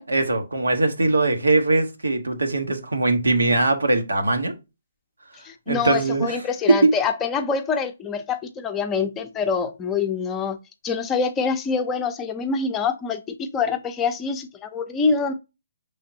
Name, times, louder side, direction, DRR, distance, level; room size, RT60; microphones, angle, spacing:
voice 1, 0.1-4.5 5.7-6.4 6.7-6.9, right 2 dB, 90° right, 1.0 m, -21 dB
voice 2, 5.4-10.6 10.8-15.3, left 5 dB, 15° left, 0.5 m, -25 dB
5.7 x 3.4 x 2.7 m
hypercardioid pair, 145°, 0 cm